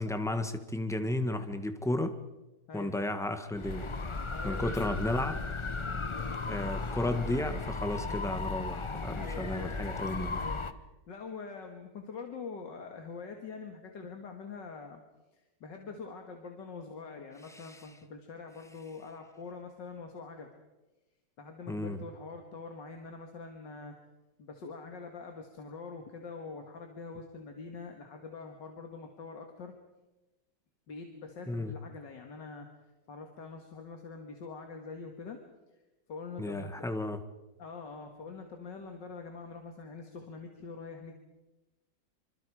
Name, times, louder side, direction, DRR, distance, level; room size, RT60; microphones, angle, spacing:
voice 1, 0.0-2.1 2.7-3.9 4.4-5.4 6.4-10.4 17.5-17.8 21.7-22.0 31.5-31.7 36.4-37.2, left 1 dB, ahead, 8 dB, 1.2 m, -33 dB
sound 1, 3.5-10.7, left 3 dB, 45° left, 0.4 m, -36 dB
voice 2, 4.3-4.9 9.1-9.8 10.3-10.7 11.1-15.0 15.3-20.5 21.4-24.0 24.4-29.7 30.9-32.7 33.1-35.4 36.1-36.9 37.6-41.1, left 4 dB, 75° left, 4 dB, 2.5 m, -44 dB
26.5 x 25.5 x 4.9 m, 1.1 s
omnidirectional pair, 2.0 m